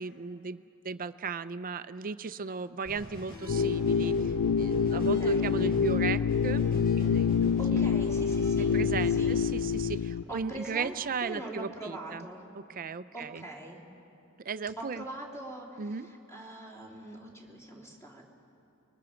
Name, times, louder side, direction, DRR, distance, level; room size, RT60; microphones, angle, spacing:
voice 1, 0.0-6.7 7.0-7.9 8.6-12.2 12.5-13.4 14.4-15.0 15.8-16.1, right 5 dB, 40° right, 13 dB, 0.5 m, -36 dB
sound 1, 2.8-9.7, equal, 45° left, 5.9 m, -44 dB
sound 2, 3.5-10.2, left 6 dB, 90° left, 0.5 m, -26 dB
voice 2, 4.9-5.5 7.6-8.8 9.1-9.3 9.8-9.9 10.3-10.9 11.2-12.4 13.1-13.8 14.8-18.2, right 1 dB, 15° left, -3 dB, 3.2 m, -43 dB
29.0 x 22.0 x 5.1 m, 2.7 s
head